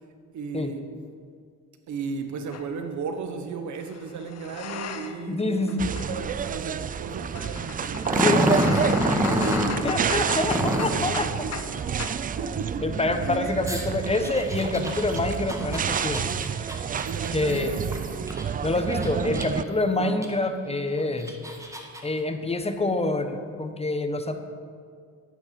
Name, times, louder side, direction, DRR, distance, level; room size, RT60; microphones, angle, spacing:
voice 1, 0.3-0.8 1.9-10.4 10.6-12.8 17.0-18.3 19.9-20.3, right 5 dB, 70° right, 7 dB, 1.3 m, -36 dB
sound 1, 2.5-2.7 3.7-5.3 5.6-11.7 12.0-12.2, left 7 dB, 55° left, 1.0 m, -38 dB
voice 2, 5.3-6.0 8.1-9.1 9.8-11.5 12.8-16.3 17.3-17.7 18.6-21.4 22.0-24.4, left 2 dB, 20° left, 7 dB, 1.0 m, -27 dB
sound 2, 5.8-19.6, right 7 dB, 30° right, 0.3 m, -29 dB
Growling, 8.1-9.8 10.4-11.0 13.7-18.4 18.9-19.7 20.2-20.3 21.0-22.0, right 1 dB, 10° right, 1.7 m, -27 dB
11.0 x 9.4 x 6.0 m, 2.1 s
cardioid pair, 90°, 30 cm